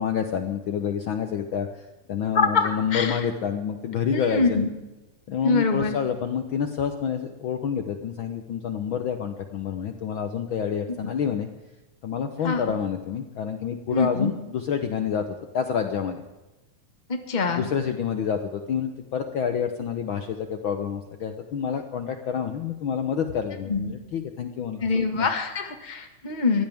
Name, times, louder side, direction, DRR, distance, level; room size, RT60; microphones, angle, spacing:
voice 1, 0.0-4.6 5.3-11.5 12.0-15.2 15.5-16.2 17.5-24.8, left 7 dB, 80° left, 6 dB, 1.1 m, -28 dB
voice 2, 2.3-3.3 4.1-4.7 5.4-5.9 12.4-12.6 13.9-14.3 17.3-17.7 23.6-23.9 24.8-26.6, left 4 dB, 25° left, 5 dB, 1.1 m, -24 dB
22.5 x 16.0 x 3.6 m, 1.1 s
omnidirectional pair, 3.6 m